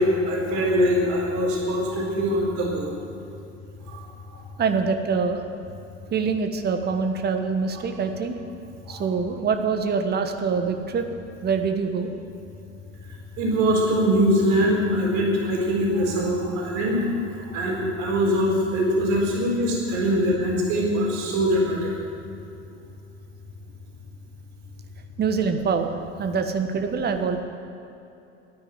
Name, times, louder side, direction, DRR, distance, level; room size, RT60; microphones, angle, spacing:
voice 1, 0.0-2.9 3.8-4.1 4.3-4.4 8.9-9.0 13.4-17.1 17.5-21.9, equal, 50° right, -2 dB, 4.3 m, -23 dB
voice 2, 4.6-5.4 6.1-8.4 8.9-11.1 11.4-12.1 25.2-27.4, right 5 dB, 25° right, 7 dB, 1.3 m, -25 dB
12.5 x 9.8 x 9.1 m, 2.7 s
figure-of-eight pair, 80°, 36 cm